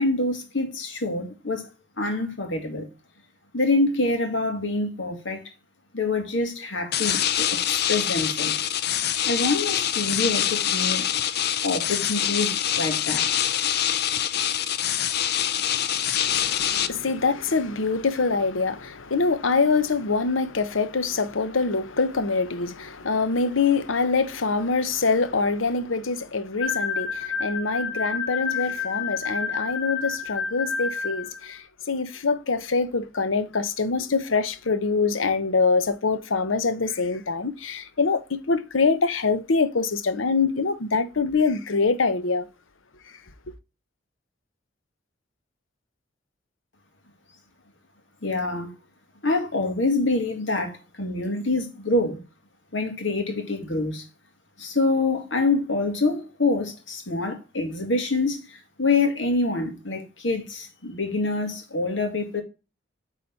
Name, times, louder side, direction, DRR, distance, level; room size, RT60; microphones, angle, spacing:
voice 1, 0.0-1.7 2.0-2.9 3.5-5.4 5.9-8.6 9.2-11.1 11.6-13.3 48.2-48.7 49.2-52.2 52.7-54.0 54.6-62.4, left 2 dB, 75° left, 2.2 m, -26 dB
sound 1, 6.9-16.9, left 10 dB, 55° left, 0.6 m, -25 dB
voice 2, 16.2-42.5, left 4 dB, 90° left, 0.9 m, -24 dB
sound 2, 26.6-31.5, left 6 dB, 25° left, 2.2 m, -29 dB
8.8 x 4.1 x 4.0 m
head